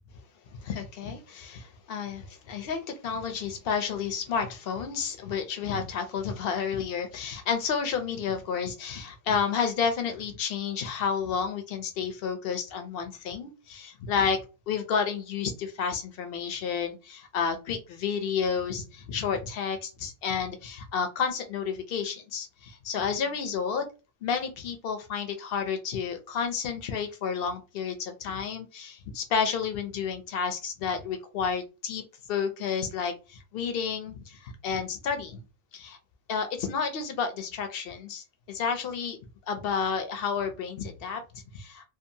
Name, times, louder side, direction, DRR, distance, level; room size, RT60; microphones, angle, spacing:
voice 1, 0.5-14.4 14.7-23.9 24.2-32.0 32.3-35.4 35.7-36.0 36.3-39.2 39.5-41.9, left 6 dB, 65° left, 0.6 m, -31 dB
2.7 x 2.3 x 2.6 m
omnidirectional pair, 1.5 m